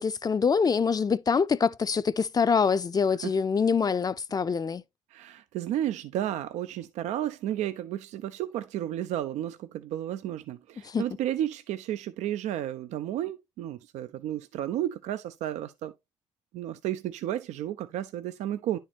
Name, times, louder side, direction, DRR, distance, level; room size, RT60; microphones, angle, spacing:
voice 1, 0.0-4.8 10.8-11.0, left 5 dB, 35° left, 0.4 m, -25 dB
voice 2, 5.1-15.9 16.5-18.8, right 12 dB, 90° right, 0.4 m, -32 dB
10.0 x 4.4 x 2.8 m
cardioid pair, 75°, 12 cm